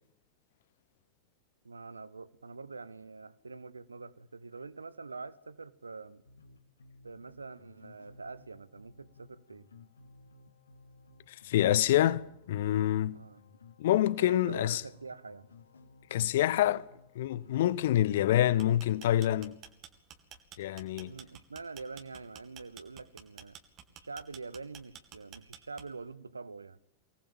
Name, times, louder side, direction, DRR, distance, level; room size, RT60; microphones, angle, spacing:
voice 1, 1.6-6.2 7.0-9.7 13.1-13.4 14.2-15.5 21.0-23.6 23.9-26.8, right 4 dB, 80° right, 1.0 m, -45 dB
sound 1, 6.2-19.3, left 3 dB, 70° left, 2.3 m, -58 dB
voice 2, 11.3-13.2 13.8-14.8 16.1-16.8 17.1-19.6 20.6-21.1, left 12 dB, 55° left, 0.9 m, -27 dB
sound 2, 18.5-26.1, right 9 dB, 35° right, 2.5 m, -51 dB
24.0 x 19.0 x 8.8 m
figure-of-eight pair, 90°, 0 cm